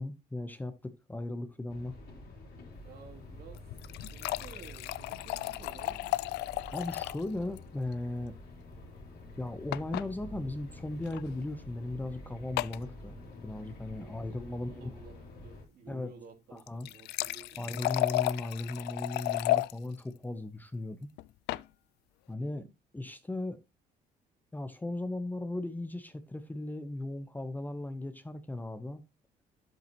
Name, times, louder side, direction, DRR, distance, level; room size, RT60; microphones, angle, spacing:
voice 1, 0.0-2.0 6.7-8.3 9.4-13.2 13.4-14.9 15.9-16.1 16.5-16.9 17.6-21.1 22.3-22.6 22.9-23.6 24.5-29.0, left 2 dB, 10° left, 0.8 m, -37 dB
sound 1, 1.7-15.6, left 1 dB, 60° left, 2.9 m, -48 dB
voice 2, 2.8-3.7 4.0-6.2 14.0-14.1 14.5-17.8 22.4-22.7, right 6 dB, 65° right, 2.9 m, -53 dB
sound 2, 3.5-7.3 7.6-7.7 7.9-8.0 9.7-10.1 11.0-11.2 12.6-12.8 16.6-19.7 21.2-21.7, left 17 dB, 80° left, 0.4 m, -33 dB
10.5 x 7.5 x 2.9 m
cardioid pair, 110°, 17 cm